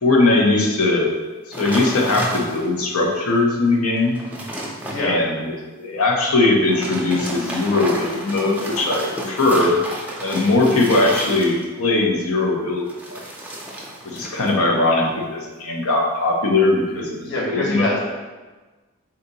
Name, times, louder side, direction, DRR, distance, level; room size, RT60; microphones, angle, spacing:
voice 1, 0.0-1.1 1.5-4.2 5.0-9.7 10.2-12.8 13.1-13.2 14.0-18.0, left 2 dB, 85° left, 0 dB, 0.8 m, -20 dB
sound 1, 1.5-2.8 3.3-3.4 3.9-5.0 6.6-11.8 12.9-14.6 14.8-15.2, right 1 dB, 5° right, 0.5 m, -31 dB
voice 2, 17.2-18.0, left 1 dB, 55° left, -3 dB, 1.0 m, -24 dB
4.1 x 2.6 x 4.0 m, 1.3 s
head